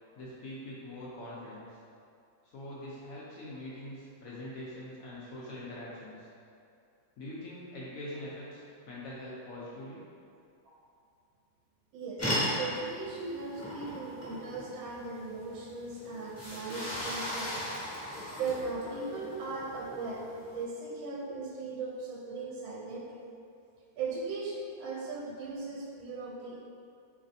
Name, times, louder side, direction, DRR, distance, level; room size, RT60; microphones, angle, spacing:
voice 1, 0.2-1.8 2.4-6.3 7.2-10.0, left 1 dB, 70° left, -7 dB, 0.8 m, -43 dB
voice 2, 11.9-17.7 18.4-20.3 20.5-23.1 24.0-26.6, right 3 dB, 80° right, -3 dB, 1.3 m, -38 dB
sound 1, 12.2-20.6, equal, 10° left, 0.7 m, -37 dB
4.1 x 3.2 x 2.6 m, 2.4 s
omnidirectional pair, 2.2 m